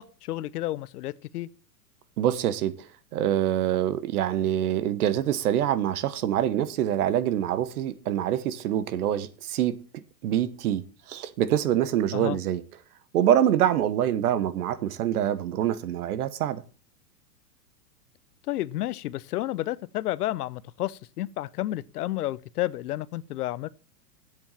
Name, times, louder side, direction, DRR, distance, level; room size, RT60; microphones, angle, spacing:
voice 1, 0.0-1.5 12.1-12.4 18.5-23.7, left 15 dB, 65° left, 0.7 m, -31 dB
voice 2, 2.2-9.8 10.2-12.6 13.1-16.6, right 11 dB, 65° right, 1.1 m, -25 dB
8.0 x 7.1 x 7.5 m
hypercardioid pair, 130°, 49 cm